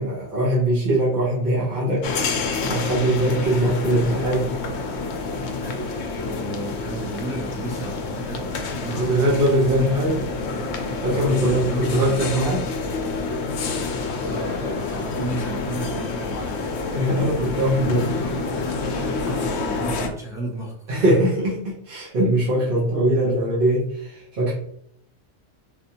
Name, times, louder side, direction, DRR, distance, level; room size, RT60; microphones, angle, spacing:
voice 1, 0.0-4.5 8.9-10.2 11.0-12.6 16.9-18.4 20.9-24.5, right 1 dB, 50° right, -7 dB, 1.0 m, -22 dB
sound 1, 2.0-20.1, left 3 dB, 70° left, 0.8 m, -28 dB
voice 2, 3.5-4.3 5.6-12.4 14.2-17.1 17.8-21.2, right 1 dB, 5° right, -5 dB, 0.9 m, -34 dB
4.2 x 2.5 x 2.7 m, 0.68 s
omnidirectional pair, 1.3 m